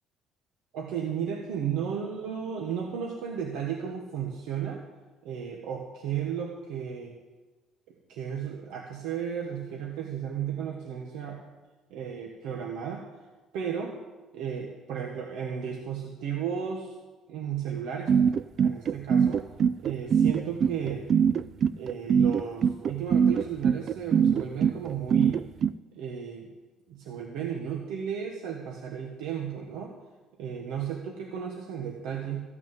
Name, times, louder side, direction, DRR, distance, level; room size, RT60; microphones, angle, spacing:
voice 1, 0.7-4.8 5.2-7.1 8.1-11.4 11.9-13.0 13.5-13.9 14.3-17.0 17.3-18.1 18.6-19.4 19.8-21.0 21.8-25.4 25.9-26.5 26.9-29.9 30.4-32.4, right 8 dB, 85° right, 1 dB, 1.4 m, -34 dB
sound 1, 18.1-25.7, right 7 dB, 45° right, 0.3 m, -22 dB
14.5 x 6.2 x 9.2 m, 1.3 s
cardioid pair, 135°, 0 cm